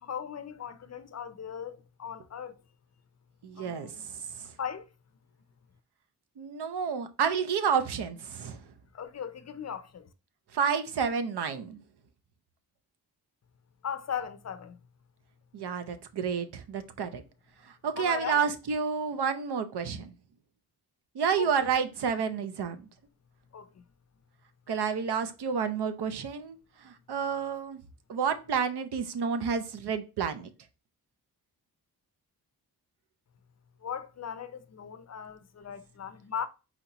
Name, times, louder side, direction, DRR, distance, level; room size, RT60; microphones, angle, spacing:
voice 1, 0.0-2.6 3.6-4.1 4.6-4.9 8.9-10.1 13.8-14.8 18.0-18.5 21.4-21.5 23.5-23.8 33.8-36.5, left 8 dB, 45° left, 0.5 m, -38 dB
voice 2, 3.4-4.5 6.4-8.6 10.5-11.8 15.5-17.2 17.7-20.1 21.1-22.9 24.7-26.6 26.8-27.8 28.1-30.5, right 6 dB, 85° right, 0.8 m, -30 dB
4.4 x 4.1 x 2.9 m
wide cardioid pair, 160°, 39 cm